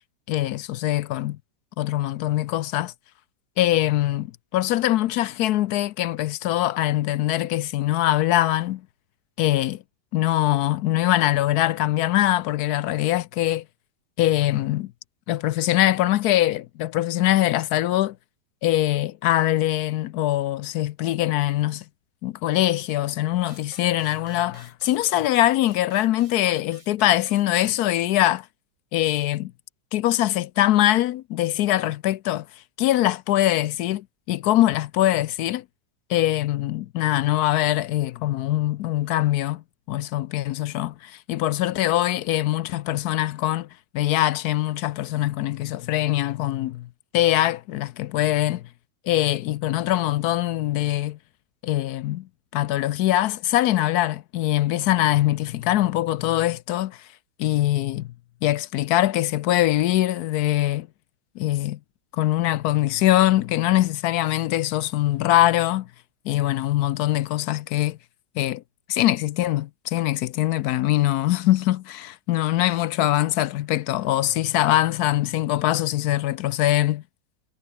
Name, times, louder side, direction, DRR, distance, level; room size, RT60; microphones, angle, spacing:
voice 1, 0.3-1.4 1.8-2.9 3.6-8.8 9.4-9.8 10.1-13.6 14.2-14.9 15.3-18.2 18.6-21.8 22.2-28.4 28.9-29.5 29.9-32.5 32.8-35.6 36.1-39.6 39.9-43.7 43.9-46.9 47.1-48.6 49.1-51.2 51.6-52.3 52.5-57.0 57.4-58.1 58.4-60.9 61.4-61.8 62.1-65.9 66.3-68.0 68.4-68.6 68.9-77.0, left 14 dB, 70° left, 1.0 m, -22 dB
sound 1, 23.4-27.8, right 1 dB, 15° right, 5.8 m, -51 dB
omnidirectional pair, 1.9 m